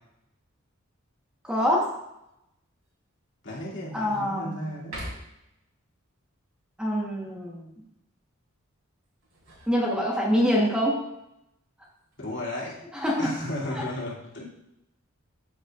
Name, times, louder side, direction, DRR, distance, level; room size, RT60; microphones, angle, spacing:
voice 1, 1.4-1.9 3.9-4.5 6.8-7.7 9.7-11.0 12.9-13.3 13.7-13.9, equal, 5° right, -3 dB, 1.2 m, -25 dB
sound 1, 1.8-2.3 2.8-2.9 3.4-4.3 4.8-5.5 9.0-10.4 11.8-12.3, equal, 90° right, 3.1 m, -44 dB
voice 2, 3.4-5.1 12.2-12.8 13.2-14.5, left 1 dB, 60° left, -6 dB, 2.6 m, -34 dB
14.0 x 5.4 x 2.5 m, 0.85 s
head